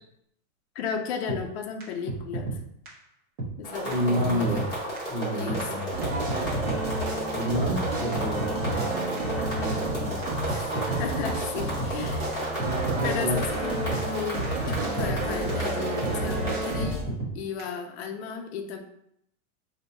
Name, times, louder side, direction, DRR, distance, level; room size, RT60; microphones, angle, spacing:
voice 1, 0.8-2.6 3.6-4.6 5.3-5.7 10.5-12.5 13.0-18.8, left 6 dB, 50° left, 4 dB, 0.5 m, -34 dB
sound 1, 1.3-1.4 1.8-1.9 2.1-2.6 2.9-3.0 3.4-3.5 3.9-4.7 5.0-5.1 5.5-5.6 6.0-6.1 6.3-6.8 7.1-7.2 7.6-7.7 8.1-8.9 9.2-9.3 9.7-9.8 10.2-10.3 10.5-11.0 11.3-11.4 11.8-11.9 12.3-12.4 12.6-13.1 13.4-13.5 13.9-14.0 14.4-14.5 14.7-15.2 15.5-15.6 16.0-16.1 16.5-16.6 16.8-17.3 17.6-17.7, right 3 dB, 40° right, 0.9 m, -32 dB
sound 2, 3.6-16.7, right 1 dB, 10° left, 0.9 m, -33 dB
voice 2, 3.8-4.6 5.1-5.8 7.3-8.7 9.1-9.2 9.5-10.2 12.9-13.4, equal, 85° right, -7 dB, 1.2 m, -29 dB
sound 3, 5.9-17.0, right 2 dB, 65° right, 1.1 m, -31 dB
2.7 x 2.3 x 4.1 m, 0.74 s
supercardioid pair, 175°, 43 cm